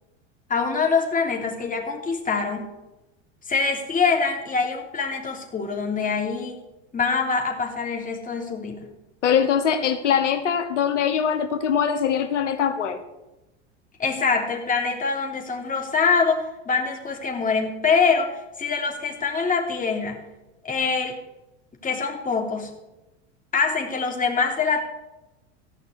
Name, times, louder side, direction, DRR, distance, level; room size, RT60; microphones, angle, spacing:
voice 1, 0.5-2.7 3.5-6.6 6.9-8.9 14.0-20.2 20.6-21.2 21.8-22.8 23.5-24.8, left 5 dB, 25° left, 2 dB, 3.4 m, -24 dB
voice 2, 9.2-13.0, left 8 dB, 85° left, 7 dB, 1.3 m, -22 dB
15.5 x 5.7 x 9.6 m, 1.0 s
hypercardioid pair, 95°, 35 cm